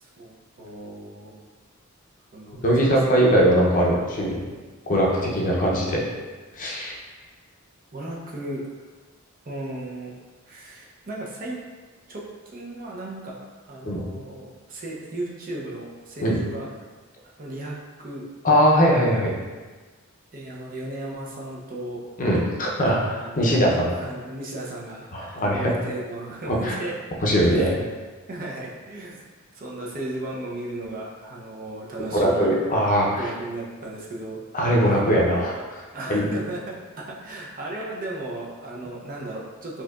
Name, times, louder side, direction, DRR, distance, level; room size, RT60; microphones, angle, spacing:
voice 1, 0.0-1.4 2.3-3.2 5.5-5.7 7.9-8.9 9.4-10.2 10.5-11.6 12.1-12.3 12.5-16.7 17.4-18.3 20.3-22.1 22.7-23.6 23.9-26.9 27.4-27.7 28.3-29.2 29.5-32.6 33.1-34.4 35.9-39.8, right 1 dB, 40° right, -3 dB, 0.6 m, -35 dB
voice 2, 2.6-4.4 4.9-6.1 6.5-7.0 13.8-14.0 16.2-16.4 18.4-19.3 22.2-23.9 25.1-25.7 26.5-26.7 27.2-27.7 32.1-33.3 34.5-36.3, equal, 40° left, -3 dB, 0.6 m, -21 dB
4.4 x 2.8 x 2.4 m, 1.3 s
head